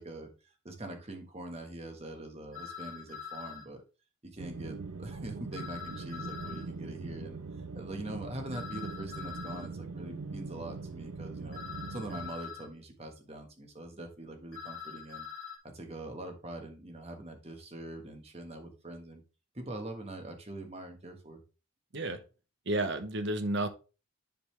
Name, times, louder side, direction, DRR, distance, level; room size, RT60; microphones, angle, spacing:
voice 1, 0.0-3.8 4.3-7.4 7.7-11.6 11.9-15.3 15.7-19.2 19.5-21.4, right 1 dB, 30° right, 4 dB, 1.3 m, -43 dB
sound 1, 2.5-3.6 5.5-6.7 8.5-9.7 11.5-12.7 14.5-15.6, left 7 dB, 70° left, 2.0 m, -43 dB
sound 2, 4.4-12.3, right 3 dB, 90° right, 0.6 m, -42 dB
voice 2, 22.7-23.7, right 2 dB, 55° right, 9 dB, 1.0 m, -31 dB
10.5 x 4.0 x 3.3 m, 0.32 s
head